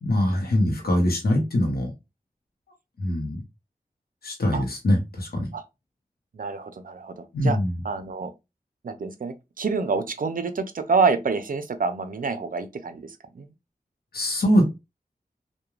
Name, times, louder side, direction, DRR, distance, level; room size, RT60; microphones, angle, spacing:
voice 1, 0.0-1.9 3.0-3.4 4.2-5.5 7.3-7.8 14.1-14.6, left 1 dB, 90° left, 0.8 m, -23 dB
voice 2, 6.3-7.6 7.8-8.3 8.8-13.5, right 4 dB, 65° right, 0.5 m, -27 dB
3.0 x 2.2 x 2.3 m
wide cardioid pair, 50°, 16 cm